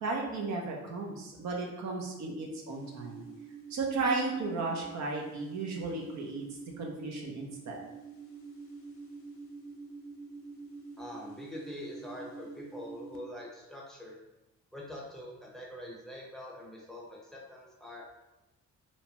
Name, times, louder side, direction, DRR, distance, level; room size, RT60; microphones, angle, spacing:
voice 1, 0.0-3.2 3.7-6.4 6.8-7.8, right 3 dB, 65° right, 0 dB, 0.6 m, -34 dB
sound 1, 2.7-13.2, right 5 dB, 45° left, 0.6 m, -47 dB
voice 2, 11.0-14.2 14.7-18.0, left 1 dB, ahead, -4 dB, 0.7 m, -44 dB
2.8 x 2.1 x 2.8 m, 0.98 s
cardioid pair, 90°, 30 cm